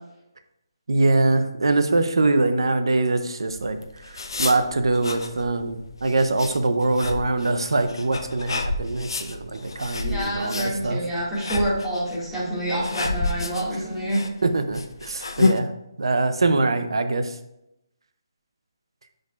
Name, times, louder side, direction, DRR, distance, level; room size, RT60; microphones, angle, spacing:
voice 1, 0.9-11.0 14.4-15.7 16.0-17.4, right 2 dB, 75° right, 8 dB, 0.7 m, -23 dB
sound 1, 3.5-15.6, left 3 dB, 65° left, 0.6 m, -30 dB
voice 2, 10.0-14.2, right 1 dB, ahead, -12 dB, 1.9 m, -27 dB
10.0 x 5.2 x 2.4 m, 0.86 s
hypercardioid pair, 175°, 3 cm